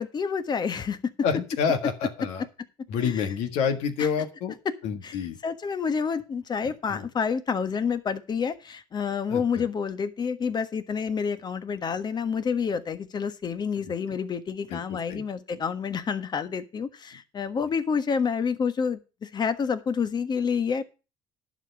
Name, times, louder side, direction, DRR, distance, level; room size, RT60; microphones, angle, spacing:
voice 1, 0.0-1.1 3.0-3.2 4.0-4.1 5.0-5.1 5.4-20.8, left 6 dB, 40° left, 12 dB, 1.3 m, -28 dB
voice 2, 1.2-2.5 2.9-4.5 4.8-5.4 6.9-7.1 9.3-9.7 13.8-13.9 14.7-15.2, left 6 dB, 75° left, 8 dB, 1.7 m, -28 dB
11.0 x 5.4 x 6.8 m, 0.32 s
hypercardioid pair, 70°, 11 cm